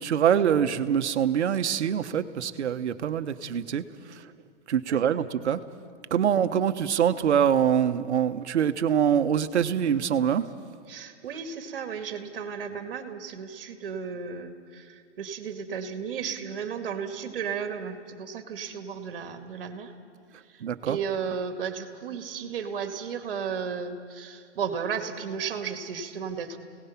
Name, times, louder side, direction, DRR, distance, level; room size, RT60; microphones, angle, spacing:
voice 1, 0.0-3.8 4.7-5.6 6.1-10.5 20.6-21.0, right 8 dB, 65° right, 9 dB, 1.2 m, -24 dB
voice 2, 4.9-5.2 6.3-6.5 10.9-19.9 20.5-26.6, right 6 dB, 50° right, 7 dB, 2.1 m, -34 dB
30.0 x 18.5 x 5.9 m, 2.2 s
hypercardioid pair, 175°, 36 cm